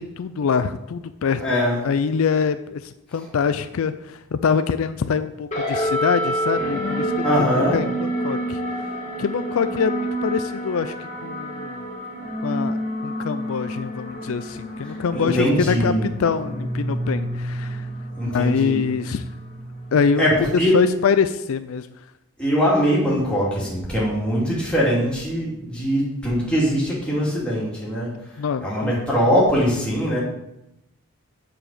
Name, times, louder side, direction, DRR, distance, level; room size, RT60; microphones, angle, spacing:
voice 1, 0.0-1.4 1.8-7.3 7.7-8.6 9.2-10.9 11.2-11.8 12.4-12.8 13.0-17.8 18.2-19.2 19.9-20.2 20.5-21.9 28.4-28.9, left 6 dB, 70° left, 12 dB, 0.4 m, -24 dB
voice 2, 1.4-1.8 7.2-7.8 15.1-16.0 18.2-18.8 20.2-20.8 22.4-28.1 28.6-30.2, equal, 5° left, -6 dB, 2.5 m, -21 dB
sound 1, 5.5-20.3, equal, 30° left, 2.0 m, -29 dB
7.6 x 4.8 x 6.7 m, 0.87 s
head